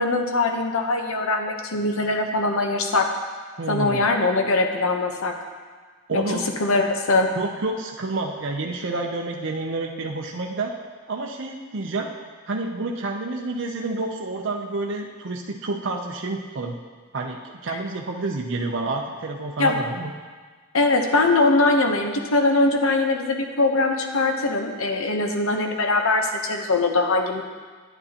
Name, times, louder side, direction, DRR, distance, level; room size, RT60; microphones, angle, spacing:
voice 1, 0.0-3.1 3.7-5.3 6.1-6.2 6.6-7.3 19.6-19.8 20.7-27.4, left 2 dB, 75° left, 4 dB, 0.9 m, -21 dB
voice 2, 3.6-4.0 6.1-6.4 7.4-10.7 11.1-12.1 12.5-16.8 17.1-20.1, right 2 dB, 55° right, 0 dB, 0.6 m, -29 dB
9.7 x 9.1 x 2.9 m, 1.5 s
head